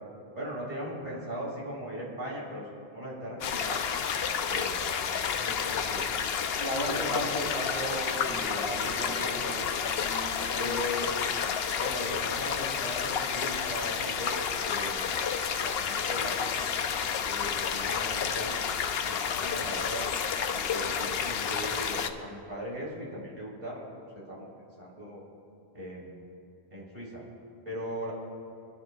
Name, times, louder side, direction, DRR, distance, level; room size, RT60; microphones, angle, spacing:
voice 1, 0.3-2.6 2.9-4.0 4.5-6.1 6.9-7.5 8.3-9.2 10.5-11.1 11.8-14.4 14.6-15.1 15.6-16.6 17.2-18.6 19.0-20.0 20.5-23.9 24.3-24.5 24.8-25.2 25.7-26.2 26.7-27.2 27.7-28.1, equal, 45° right, -6 dB, 3.8 m, -39 dB
sound 1, 3.4-22.1, left 7 dB, 75° left, 0.9 m, -30 dB
voice 2, 6.6-9.7 10.0-10.9, equal, 85° right, -5 dB, 3.4 m, -36 dB
28.0 x 11.0 x 2.3 m, 2.6 s
omnidirectional pair, 1.0 m